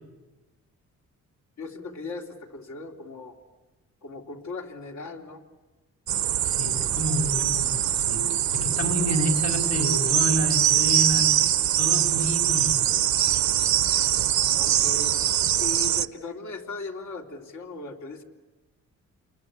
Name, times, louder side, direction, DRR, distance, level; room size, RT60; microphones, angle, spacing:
voice 1, 1.6-3.4 4.0-5.4 14.5-15.2 15.6-18.2, left 3 dB, 70° left, 1 dB, 3.6 m, -38 dB
sound 1, 6.1-16.1, right 11 dB, 75° right, 0.9 m, -23 dB
voice 2, 6.4-8.2 8.5-11.3 11.8-12.8, equal, 50° left, 2 dB, 5.4 m, -29 dB
30.0 x 22.0 x 8.6 m, 1.2 s
cardioid pair, 135°, 29 cm